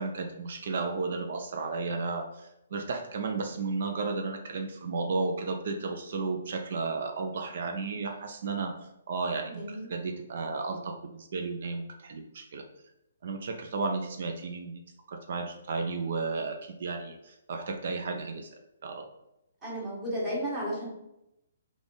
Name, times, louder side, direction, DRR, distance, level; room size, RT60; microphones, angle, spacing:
voice 1, 0.0-8.7 9.1-12.6 13.2-14.8 15.1-19.1, right 4 dB, 60° right, 4 dB, 0.5 m, -33 dB
voice 2, 9.5-9.9 19.6-20.9, equal, 15° right, -6 dB, 1.4 m, -33 dB
3.5 x 2.4 x 3.9 m, 0.86 s
hypercardioid pair, 155°, 0 cm